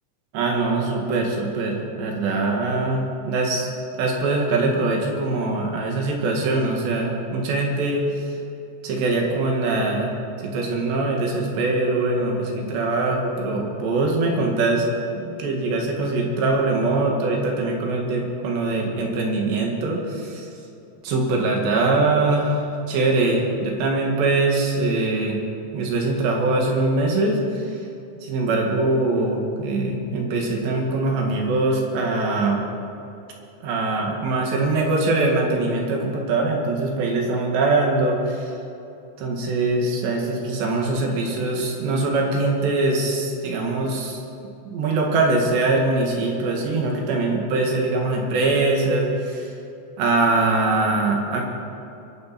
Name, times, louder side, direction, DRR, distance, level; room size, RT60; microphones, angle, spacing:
voice 1, 0.3-3.7 4.0-8.1 8.8-10.1 10.4-14.9 15.1-20.5 21.0-25.4 25.7-27.4 28.2-32.6 33.6-38.2 39.2-44.2 44.7-49.5 50.0-51.4, right 2 dB, 70° right, 0 dB, 4.1 m, -22 dB
23.0 x 12.0 x 4.4 m, 2.8 s
omnidirectional pair, 5.4 m